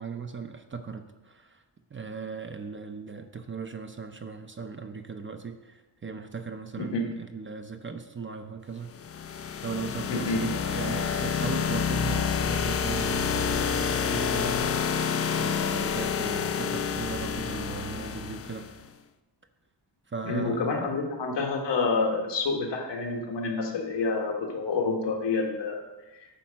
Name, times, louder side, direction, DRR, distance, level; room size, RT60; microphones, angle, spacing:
voice 1, 0.0-1.6 1.9-8.9 9.6-18.7 20.1-21.0, right 5 dB, 30° right, 7 dB, 0.5 m, -38 dB
sound 1, 8.9-18.8, left 7 dB, 35° left, 0.4 m, -28 dB
voice 2, 10.1-10.4 20.2-25.8, left 3 dB, 80° left, 1 dB, 1.5 m, -28 dB
9.1 x 4.2 x 6.3 m, 1.1 s
wide cardioid pair, 130°, 42 cm